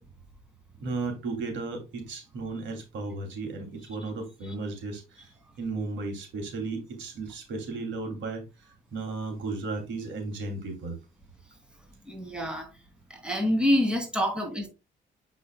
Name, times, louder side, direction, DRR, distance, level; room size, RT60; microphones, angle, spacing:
voice 1, 0.8-5.3 5.6-8.4 8.9-11.0, right 3 dB, 75° right, 2.6 m, -34 dB
voice 2, 12.1-12.7 13.1-14.7, left 1 dB, 5° right, 2.7 m, -26 dB
7.5 x 6.1 x 2.2 m
cardioid pair, 90°, 20 cm